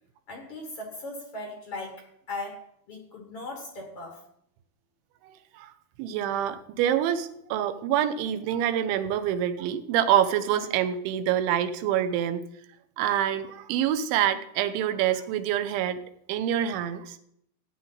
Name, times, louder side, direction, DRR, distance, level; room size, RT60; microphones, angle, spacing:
voice 1, 0.3-4.3, left 2 dB, 80° left, 2 dB, 1.3 m, -38 dB
voice 2, 6.0-12.4 13.0-16.0 16.3-17.2, right 10 dB, 80° right, 10 dB, 3.1 m, -26 dB
14.5 x 9.1 x 4.0 m, 0.71 s
omnidirectional pair, 5.4 m